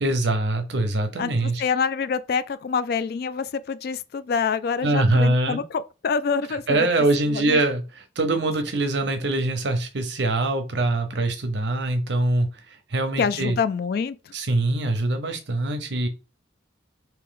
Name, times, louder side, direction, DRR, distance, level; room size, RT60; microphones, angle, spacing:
voice 1, 0.0-1.6 4.8-5.6 6.7-7.8 8.2-13.6 14.3-16.1, right 2 dB, 65° right, 0.8 m, -23 dB
voice 2, 1.2-6.9 7.3-7.6 13.2-14.3, left 5 dB, 55° left, 0.3 m, -26 dB
3.1 x 2.9 x 3.8 m
head